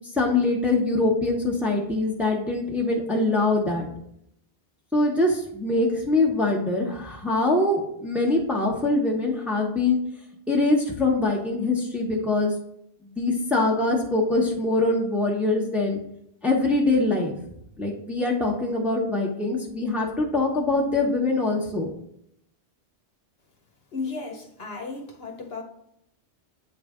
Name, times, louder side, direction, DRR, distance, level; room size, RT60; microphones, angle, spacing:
voice 1, 0.1-3.9 4.9-10.0 10.5-12.5 13.2-16.0 16.4-17.3 17.8-21.9, left 2 dB, ahead, -1 dB, 0.9 m, -23 dB
voice 2, 23.9-25.6, left 4 dB, 60° left, 3 dB, 1.1 m, -34 dB
8.7 x 3.2 x 3.6 m, 0.75 s
omnidirectional pair, 1.1 m